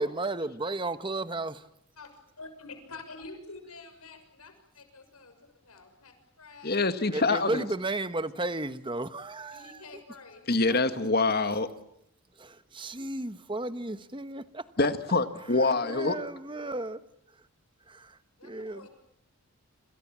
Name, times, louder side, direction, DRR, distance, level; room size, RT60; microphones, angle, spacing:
voice 1, 0.0-1.7 7.1-9.8 10.7-10.8 12.4-14.6 15.6-17.0 17.9-18.9, right 2 dB, 20° right, 1.2 m, -34 dB
voice 2, 2.0-5.3 5.6-6.9 9.5-10.4 18.4-18.9, left 3 dB, 85° left, 6.5 m, -48 dB
voice 3, 6.6-7.6 10.5-11.7 14.8-16.2, left 3 dB, 45° left, 1.9 m, -25 dB
28.5 x 27.0 x 7.5 m
head